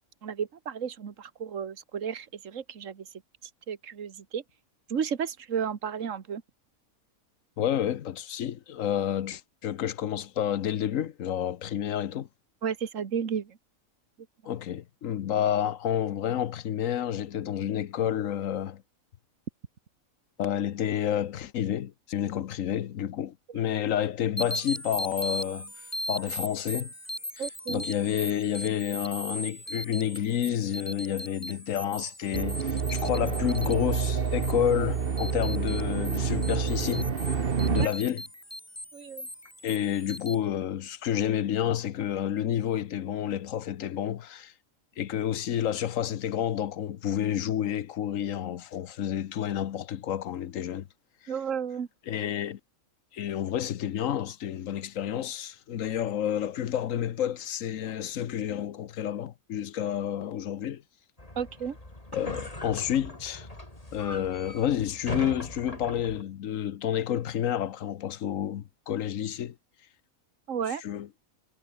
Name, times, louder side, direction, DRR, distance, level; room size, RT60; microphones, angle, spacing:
voice 1, 0.2-3.1 3.7-4.4 4.9-6.4 12.6-13.6 23.5-23.6 27.4-27.8 37.8-37.9 38.9-39.3 51.3-51.9 61.4-61.8 70.5-70.8, right 7 dB, 65° right, 1.8 m, -33 dB
voice 2, 7.6-12.3 14.4-18.8 20.4-26.9 27.7-37.4 37.7-38.2 39.6-44.5 45.0-50.9 52.1-52.6 53.1-60.8 62.1-63.5 63.9-69.5 70.8-71.1, left 10 dB, 70° left, 1.2 m, -30 dB
sound 1, 24.4-40.3, equal, 10° left, 5.0 m, -39 dB
sound 2, 32.3-37.9, right 6 dB, 45° right, 1.3 m, -28 dB
sound 3, 61.2-66.2, left 1 dB, 25° left, 4.1 m, -40 dB
omnidirectional pair, 1.5 m